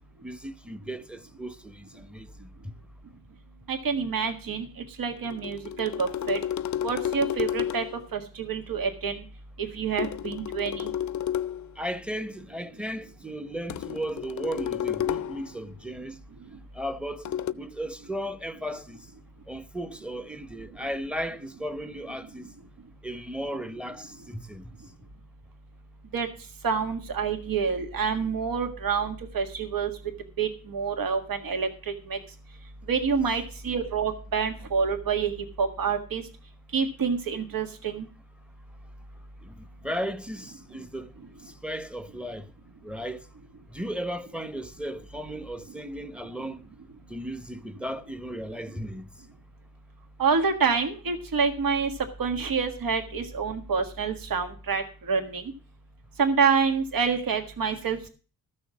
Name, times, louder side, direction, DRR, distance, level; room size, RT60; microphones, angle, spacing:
voice 1, 0.2-2.8 11.8-16.2 16.7-17.3 17.6-19.1 19.5-22.5 23.0-24.8 39.4-41.1 41.4-42.5 42.8-43.3 43.7-46.6 47.1-49.1, equal, 5° right, 0.8 m, -35 dB
voice 2, 3.7-6.4 6.8-7.8 8.1-9.2 9.6-10.9 26.1-26.3 26.6-29.9 30.4-32.2 32.9-35.3 35.6-36.2 36.7-38.0 50.2-51.9 52.2-55.4 56.2-58.1, right 5 dB, 80° right, 1.7 m, -27 dB
sound 1, 5.2-8.0 10.0-11.7 13.7-15.5 17.2-17.5, left 10 dB, 55° left, 0.5 m, -31 dB
14.0 x 6.4 x 6.0 m
wide cardioid pair, 140°, 34 cm